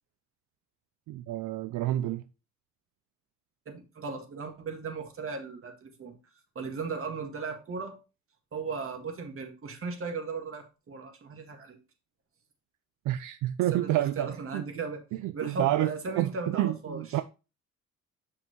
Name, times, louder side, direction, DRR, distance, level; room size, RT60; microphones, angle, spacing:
voice 1, 1.1-2.2 13.1-14.7 15.2-17.2, right 14 dB, 80° right, 0.5 m, -29 dB
voice 2, 3.7-6.2 6.6-8.0 8.5-11.8 13.7-13.9 14.2-15.0 15.3-17.2, right 4 dB, 45° right, 1.9 m, -37 dB
7.1 x 5.7 x 3.0 m
cardioid pair, 90°, 30 cm